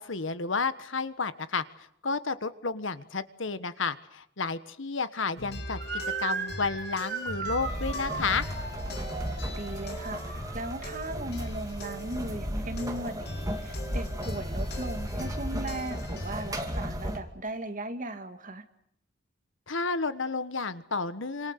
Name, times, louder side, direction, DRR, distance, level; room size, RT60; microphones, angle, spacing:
voice 1, 0.0-1.6 2.0-5.8 6.2-8.5 19.7-21.5, left 4 dB, 70° left, 13 dB, 1.4 m, -31 dB
sound 1, 5.4-16.5, left 1 dB, 55° left, 3.3 m, -41 dB
Motor vehicle (road) / Siren, 5.8-11.0, right 5 dB, 55° right, 3.8 m, -37 dB
sound 2, 7.6-17.2, equal, 15° right, 2.6 m, -35 dB
voice 2, 9.2-18.6, right 1 dB, 40° right, 7 dB, 2.2 m, -37 dB
28.5 x 26.5 x 6.7 m, 0.70 s
head